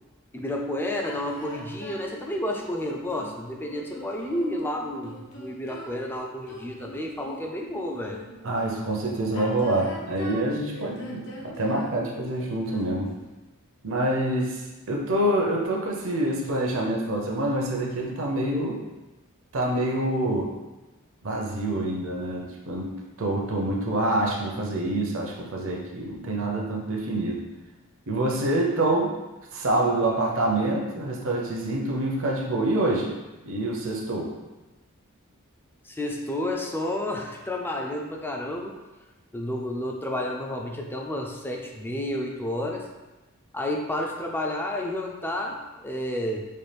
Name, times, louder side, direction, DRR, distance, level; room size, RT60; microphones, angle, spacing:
voice 1, 0.3-8.3 35.8-38.7 39.3-42.9 43.5-46.5, left 1 dB, 10° left, 0 dB, 0.3 m, -31 dB
sound 1, 1.0-8.5 9.2-13.2, left 1 dB, 75° left, 0.9 m, -42 dB
voice 2, 8.4-13.1 13.8-18.8 19.5-20.5 21.2-22.9 23.2-27.4 28.1-29.1 29.5-33.1 33.4-34.3, right 1 dB, 65° right, 0 dB, 0.7 m, -26 dB
4.3 x 2.3 x 3.3 m, 1.1 s
head